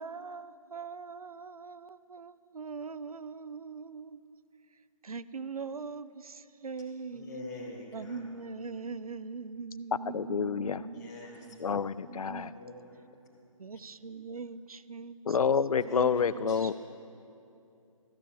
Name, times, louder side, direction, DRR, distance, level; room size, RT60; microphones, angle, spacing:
voice 1, 0.0-4.2 5.0-7.4 7.9-11.1 11.4-12.6 13.6-15.4 15.8-16.7, right 4 dB, 90° right, 15 dB, 0.5 m, -42 dB
voice 2, 7.1-8.2 10.8-11.5 12.5-13.1 13.7-13.8 15.9-16.1 16.5-16.7, left 2 dB, 30° left, -2 dB, 2.1 m, -45 dB
voice 3, 10.1-10.8 11.6-12.5 15.3-16.7, left 6 dB, 80° left, 17 dB, 0.4 m, -28 dB
14.5 x 6.8 x 7.3 m, 2.7 s
figure-of-eight pair, 145°, 18 cm